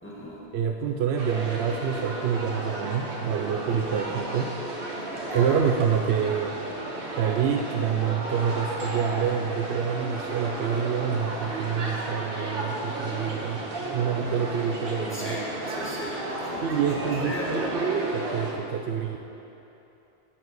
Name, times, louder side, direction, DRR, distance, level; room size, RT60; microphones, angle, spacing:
voice 1, 0.0-0.4 5.1-5.6 15.1-17.7, equal, 10° left, -6 dB, 1.8 m, -37 dB
voice 2, 0.5-4.5 5.3-6.5 7.1-15.4 16.6-19.2, right 7 dB, 75° right, 3 dB, 0.8 m, -27 dB
sound 1, 1.2-18.5, right 1 dB, 60° right, 1.4 m, -33 dB
11.5 x 4.8 x 7.8 m, 3.0 s
omnidirectional pair, 1.1 m